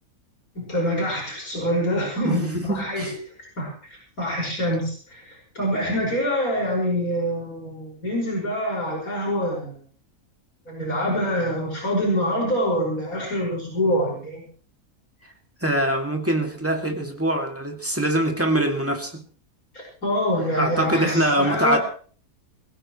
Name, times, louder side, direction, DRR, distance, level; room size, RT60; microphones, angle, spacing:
voice 1, 0.5-3.2 3.6-3.7 4.2-9.7 10.7-14.4 20.0-21.8, equal, 70° left, -2 dB, 6.1 m, -25 dB
voice 2, 2.2-3.1 15.6-19.2 20.6-21.8, right 1 dB, 10° right, 2 dB, 2.3 m, -23 dB
22.5 x 16.0 x 3.2 m, 0.43 s
omnidirectional pair, 1.5 m